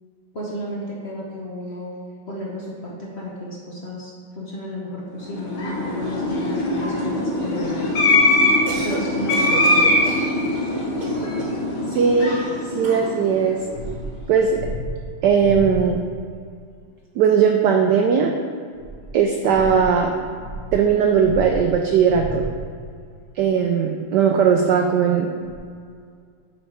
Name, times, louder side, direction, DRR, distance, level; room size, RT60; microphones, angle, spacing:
voice 1, 0.3-2.0 2.3-7.9 8.8-9.9, equal, 60° left, -4 dB, 0.7 m, -33 dB
sound 1, 5.3-13.8, left 2 dB, 80° left, 2.1 m, -22 dB
Cough, 8.5-9.0 9.3-10.3 11.0-11.7 12.8-13.2, right 3 dB, 55° right, 1.4 m, -32 dB
voice 2, 11.9-12.5 12.7-13.6 14.3-14.6 15.2-16.0 17.2-18.3 19.1-20.1 20.7-22.5 23.4-25.3, right 7 dB, 90° right, 3 dB, 0.9 m, -18 dB
sound 2, 13.5-16.2 18.7-22.9 23.5-23.6 25.4-25.6, equal, 25° left, 1.1 m, -33 dB
6.3 x 5.4 x 4.6 m, 2.1 s
omnidirectional pair, 2.4 m